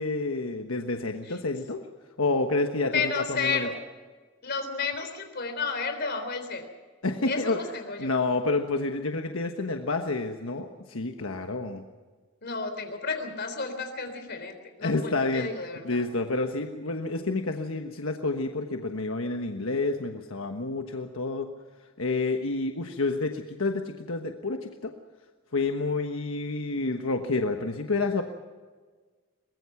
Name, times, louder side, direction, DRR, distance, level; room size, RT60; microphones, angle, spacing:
voice 1, 0.0-1.8 2.2-3.7 7.0-7.6 8.0-11.8 14.8-15.5 15.8-21.5 22.0-24.9 25.5-28.2, left 3 dB, 85° left, 4 dB, 1.3 m, -29 dB
voice 2, 2.8-3.8 4.4-6.7 7.3-8.1 12.4-16.0, left 4 dB, 55° left, 7 dB, 3.6 m, -32 dB
23.0 x 20.5 x 5.9 m, 1.4 s
head